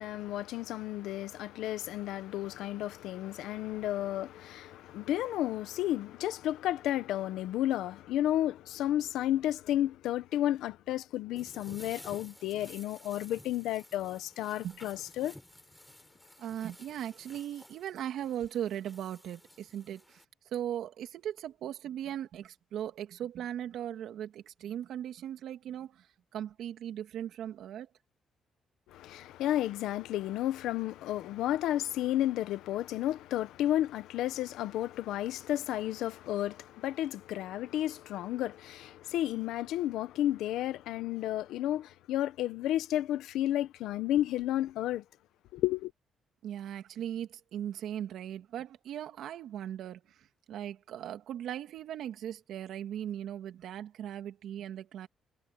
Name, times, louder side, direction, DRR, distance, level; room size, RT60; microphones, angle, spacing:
voice 1, 0.0-15.3 28.9-45.0 45.5-45.9, left 13 dB, 90° left, 1.2 m, -32 dB
sound 1, 11.4-20.3, left 1 dB, 5° left, 5.9 m, -54 dB
voice 2, 16.4-20.0 20.5-25.9 26.3-27.9 46.4-50.0 50.5-55.1, right 10 dB, 75° right, 2.4 m, -38 dB
cardioid pair, 90°, 0 cm